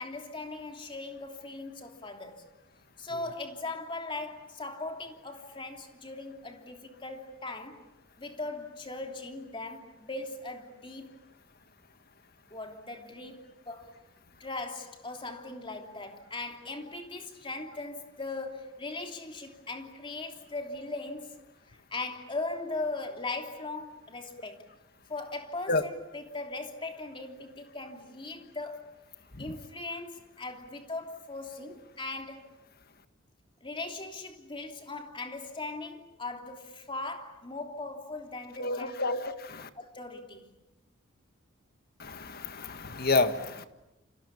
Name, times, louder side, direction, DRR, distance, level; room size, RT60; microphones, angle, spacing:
voice 1, 0.0-2.4 3.0-7.8 8.2-11.1 12.5-14.0 14.4-21.4 21.7-24.7 25.1-28.9 29.4-32.4 33.6-39.1 39.7-40.5, left 2 dB, 25° left, 3.1 m, -39 dB
voice 2, 38.6-39.7 42.0-43.6, left 3 dB, 50° left, 1.7 m, -29 dB
30.0 x 27.0 x 7.1 m
head